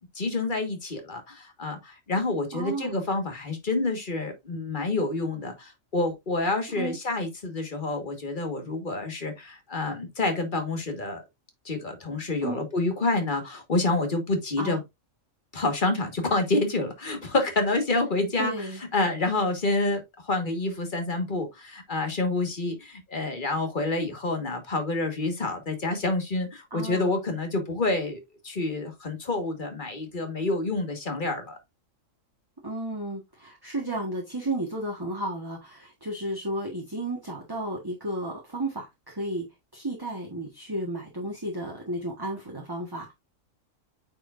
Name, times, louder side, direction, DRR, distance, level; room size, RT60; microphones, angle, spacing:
voice 1, 0.2-11.2 11.7-14.8 15.5-31.6, left 2 dB, 40° left, 1.8 m, -28 dB
voice 2, 2.5-3.0 6.8-7.0 12.4-12.6 14.6-14.8 18.4-18.8 26.7-27.1 32.6-39.4 39.7-43.1, right 1 dB, 15° right, 1.5 m, -33 dB
8.6 x 4.9 x 2.6 m
omnidirectional pair, 1.4 m